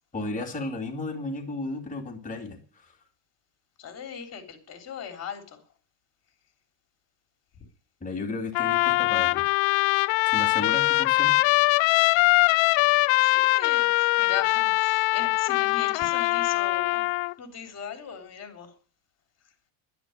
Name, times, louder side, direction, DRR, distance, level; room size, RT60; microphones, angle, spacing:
voice 1, 0.1-2.9 8.0-9.4 10.3-11.4, left 2 dB, 15° left, 2.8 m, -34 dB
voice 2, 3.8-5.6 13.2-17.0 17.4-18.7, left 7 dB, 30° left, 3.8 m, -39 dB
Trumpet, 8.5-17.3, left 22 dB, 75° left, 0.6 m, -22 dB
11.0 x 11.0 x 9.7 m
cardioid pair, 155°, 47 cm